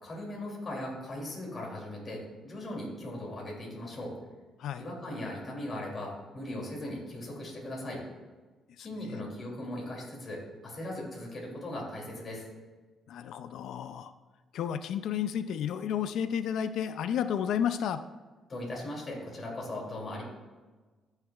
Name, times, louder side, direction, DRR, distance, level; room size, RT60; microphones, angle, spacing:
voice 1, 0.0-4.1 4.8-8.0 8.8-12.5 18.5-20.2, left 1 dB, 40° left, -2 dB, 2.7 m, -38 dB
voice 2, 8.8-9.2 13.1-14.1 14.5-18.0, left 8 dB, 75° left, 11 dB, 0.3 m, -32 dB
14.0 x 6.4 x 2.4 m, 1.3 s
cardioid pair, 90°, 0 cm